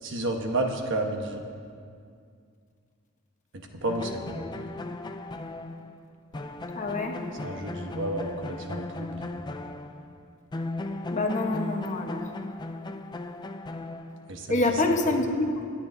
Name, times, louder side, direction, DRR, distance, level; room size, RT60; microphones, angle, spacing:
voice 1, 0.0-1.4 3.5-4.3 7.4-9.3 14.3-14.8, right 1 dB, 60° right, 3 dB, 1.1 m, -31 dB
sound 1, 3.9-10.2 10.5-14.5, left 2 dB, 20° left, 0.4 m, -37 dB
voice 2, 6.7-7.2 11.1-12.2 14.5-15.6, left 2 dB, 35° left, 2 dB, 1.1 m, -26 dB
26.5 x 9.9 x 2.7 m, 2.3 s
head